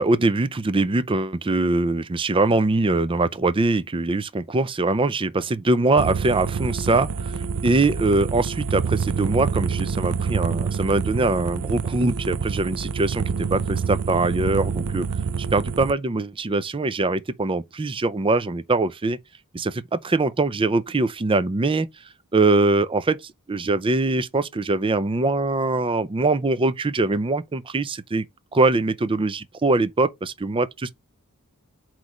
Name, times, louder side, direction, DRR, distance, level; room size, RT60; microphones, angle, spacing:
voice 1, 0.0-7.3 7.6-13.2 13.5-15.1 15.4-19.2 19.5-21.9 22.3-28.2 28.5-30.9, right 2 dB, 25° right, 0.5 m, -22 dB
sound 1, 6.0-15.9, right 5 dB, 80° right, 0.6 m, -27 dB
8.0 x 3.2 x 4.9 m
head